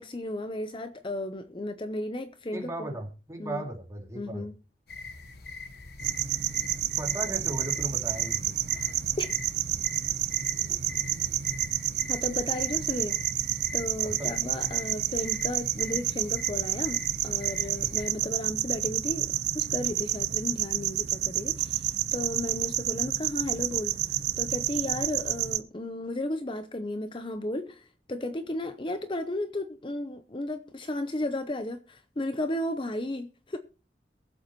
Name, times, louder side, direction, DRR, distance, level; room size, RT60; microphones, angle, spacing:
voice 1, 0.0-2.9 3.4-3.6 4.1-4.6 9.2-9.3 12.1-13.2 13.7-33.6, left 1 dB, 30° left, 0.7 m, -34 dB
voice 2, 2.5-4.5 7.0-8.6 14.0-14.5, right 1 dB, 15° right, 2.5 m, -36 dB
sound 1, 4.9-18.1, left 3 dB, 60° left, 1.0 m, -43 dB
sound 2, 6.0-25.6, right 12 dB, 70° right, 0.7 m, -29 dB
22.5 x 8.0 x 3.0 m
head